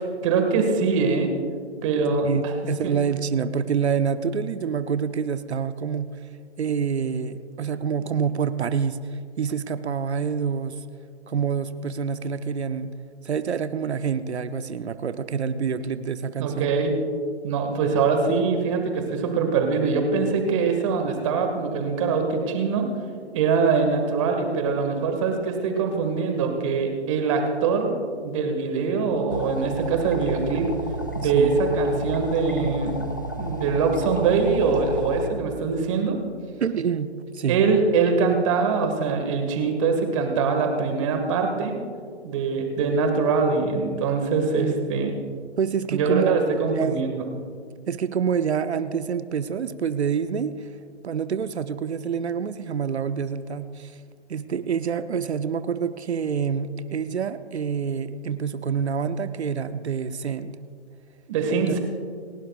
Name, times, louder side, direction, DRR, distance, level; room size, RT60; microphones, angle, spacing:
voice 1, 0.2-1.3 1.8-2.5 2.8-3.0 16.4-16.9 17.4-22.9 23.3-30.7 31.1-32.9 33.4-36.2 37.5-41.7 42.2-45.1 45.9-47.3 61.3-61.8, right 5 dB, 30° right, 4 dB, 1.7 m, -23 dB
voice 2, 2.2-6.1 6.6-9.0 9.4-10.8 11.3-12.9 13.2-16.7 31.2-31.6 36.6-37.6 44.6-44.7 45.6-47.0 47.9-50.7 51.0-54.0 54.3-60.6 61.5-61.7, right 7 dB, 70° right, 12 dB, 0.8 m, -27 dB
sound 1, 29.3-35.3, equal, 20° left, 0.4 m, -32 dB
29.0 x 12.0 x 2.4 m, 2.1 s
hypercardioid pair, 150°, 34 cm